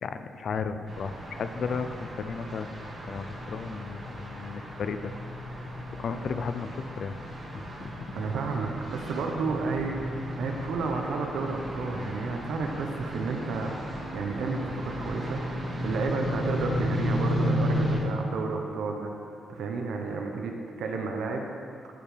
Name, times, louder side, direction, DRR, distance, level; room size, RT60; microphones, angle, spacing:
voice 1, 0.0-2.7 3.0-5.1 6.0-7.2 7.5-8.2, left 5 dB, 50° left, 9 dB, 0.4 m, -34 dB
sound 1, 0.9-18.0, equal, 40° right, 1.5 m, -34 dB
voice 2, 8.1-9.9 10.4-15.4 15.8-19.1 19.5-21.4, right 4 dB, 85° right, 2 dB, 0.9 m, -31 dB
13.5 x 5.2 x 3.3 m, 2.4 s
wide cardioid pair, 165°, 0 cm